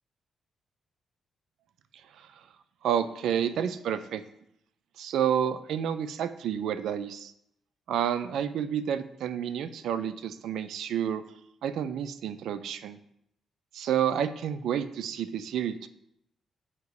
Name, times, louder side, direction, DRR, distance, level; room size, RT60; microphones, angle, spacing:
voice 1, 2.8-4.2 5.0-7.3 7.9-11.2 11.6-13.0 13.7-15.9, right 9 dB, 80° right, 10 dB, 0.4 m, -30 dB
8.0 x 2.9 x 4.7 m, 0.77 s
cardioid pair, 70°, 0 cm